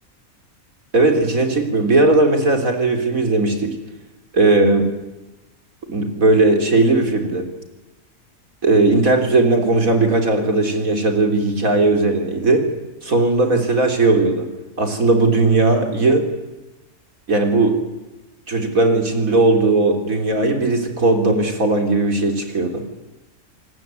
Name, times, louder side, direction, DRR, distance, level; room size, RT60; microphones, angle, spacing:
voice 1, 0.9-3.7 4.3-4.9 5.9-7.5 8.6-12.6 13.0-14.5 14.8-16.3 17.3-17.8 18.5-22.9, right 2 dB, 70° right, 5 dB, 4.1 m, -17 dB
27.5 x 19.0 x 9.4 m, 1.1 s
omnidirectional pair, 1.5 m